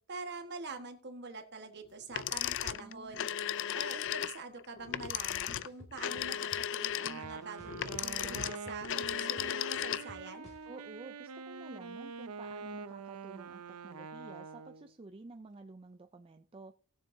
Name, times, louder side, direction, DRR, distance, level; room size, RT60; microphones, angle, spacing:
voice 1, 0.1-3.2 3.7-10.5, right 3 dB, 50° right, 1.4 m, -45 dB
sound 1, 2.1-10.3, left 10 dB, 55° left, 0.4 m, -35 dB
voice 2, 2.8-3.3 10.7-16.7, right 3 dB, 25° right, 0.4 m, -51 dB
sound 2, 5.1-5.2 5.6-6.6 7.0-8.2 8.5-10.6, left 1 dB, 30° left, 2.4 m, -53 dB
Wind instrument woodwind instrument, 6.9-14.9, right 5 dB, 80° right, 0.6 m, -45 dB
18.5 x 7.2 x 2.7 m
head